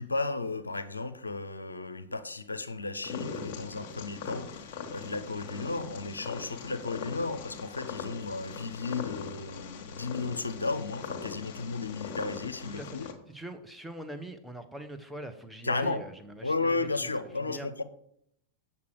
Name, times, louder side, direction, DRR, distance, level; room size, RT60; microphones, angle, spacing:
voice 1, 0.0-13.1 15.6-16.0 16.4-17.8, left 3 dB, 80° left, 0.6 m, -34 dB
Purr, 3.0-13.1, left 6 dB, 45° left, 1.4 m, -41 dB
voice 2, 12.8-17.1 17.4-17.7, right 1 dB, ahead, 1.0 m, -43 dB
8.3 x 7.1 x 4.8 m
figure-of-eight pair, 90°, 0 cm